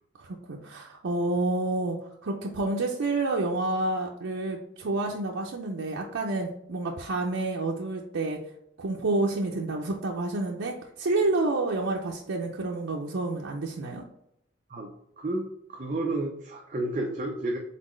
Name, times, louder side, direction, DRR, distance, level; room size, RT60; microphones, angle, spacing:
voice 1, 0.2-8.4 8.8-14.0, right 2 dB, 85° right, -1 dB, 0.5 m, -29 dB
voice 2, 14.7-17.6, right 2 dB, 40° right, 0 dB, 0.5 m, -31 dB
4.2 x 3.9 x 3.1 m, 0.78 s
head